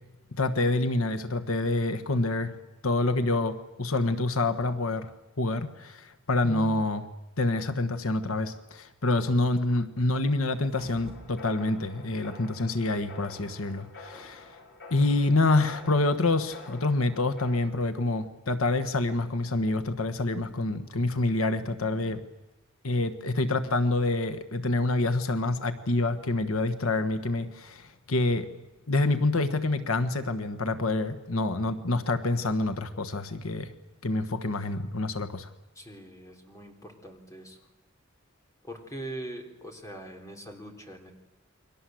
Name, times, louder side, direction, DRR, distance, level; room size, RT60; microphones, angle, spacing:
voice 1, 0.3-2.6 2.8-5.1 5.4-7.1 7.4-14.6 14.9-22.2 22.8-28.5 28.9-33.7 34.0-35.5, left 2 dB, 80° left, 9 dB, 1.4 m, -27 dB
sound 1, 10.5-11.4 11.8-11.9, right 1 dB, 30° right, 1.3 m, -46 dB
sound 2, 10.7-17.6, left 3 dB, 55° left, 7.1 m, -48 dB
voice 2, 35.8-37.6 38.6-41.1, right 1 dB, 15° left, 4 dB, 3.7 m, -42 dB
29.5 x 23.0 x 7.8 m, 1.0 s
head